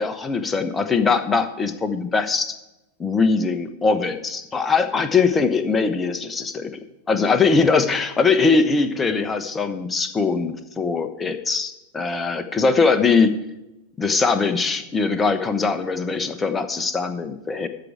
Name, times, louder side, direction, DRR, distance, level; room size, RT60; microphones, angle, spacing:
voice 1, 0.0-2.5 3.0-6.7 7.1-13.3 14.0-17.7, left 4 dB, 15° left, 9 dB, 1.1 m, -21 dB
13.5 x 4.8 x 8.8 m, 0.95 s
figure-of-eight pair, 90°, 0 cm